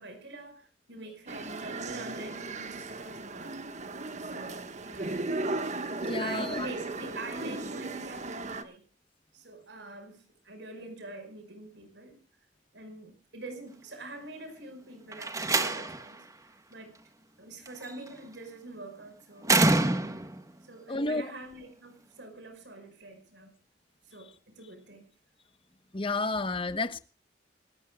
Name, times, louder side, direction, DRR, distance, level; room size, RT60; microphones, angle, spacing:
voice 1, 0.0-3.6 4.2-5.2 6.2-8.8 9.3-12.2 12.7-16.3 16.7-16.9 17.4-19.7 20.6-23.5 24.1-25.1, right 2 dB, 70° right, 5.4 m, -44 dB
sound 1, 1.3-8.6, right 2 dB, 40° right, 1.5 m, -36 dB
voice 2, 6.0-6.7 20.9-21.2 25.9-27.0, left 2 dB, 30° left, 1.0 m, -30 dB
Slam, 15.1-16.1 17.7-18.1 19.4-20.4, right 2 dB, 20° right, 1.3 m, -26 dB
27.0 x 13.5 x 2.3 m
head